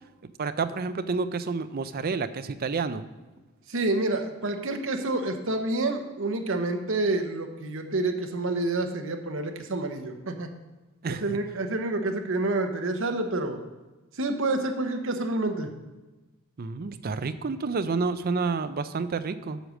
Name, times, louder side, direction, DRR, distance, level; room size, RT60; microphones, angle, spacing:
voice 1, 0.4-3.0 11.0-11.4 16.6-19.6, right 4 dB, 45° right, 11 dB, 0.5 m, -29 dB
voice 2, 3.7-10.5 11.1-13.6 14.2-15.7, right 2 dB, 60° right, 5 dB, 1.0 m, -28 dB
8.0 x 6.5 x 6.2 m, 1.2 s
head